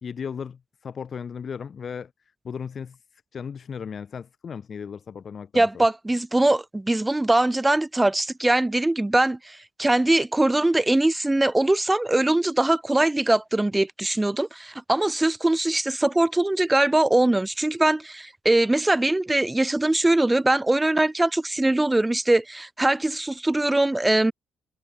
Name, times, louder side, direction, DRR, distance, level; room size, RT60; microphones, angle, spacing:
voice 1, 0.0-2.1 2.4-3.0 3.3-5.9, left 6 dB, 50° left, 1.3 m, -36 dB
voice 2, 5.5-24.3, right 2 dB, 10° right, 0.8 m, -22 dB
cardioid pair, 90°, 0 cm